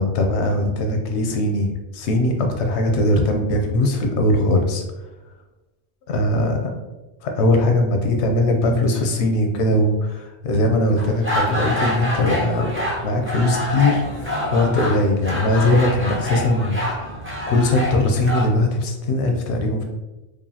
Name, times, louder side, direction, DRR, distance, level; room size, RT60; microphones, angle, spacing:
voice 1, 0.0-1.7 1.9-4.8 6.1-6.7 7.2-12.7 13.0-17.1 17.5-19.8, left 1 dB, 90° left, 3 dB, 0.9 m, -20 dB
sound 1, 11.0-18.5, left 1 dB, 15° right, 0.8 m, -26 dB
4.8 x 2.5 x 2.7 m, 1.1 s
omnidirectional pair, 1.1 m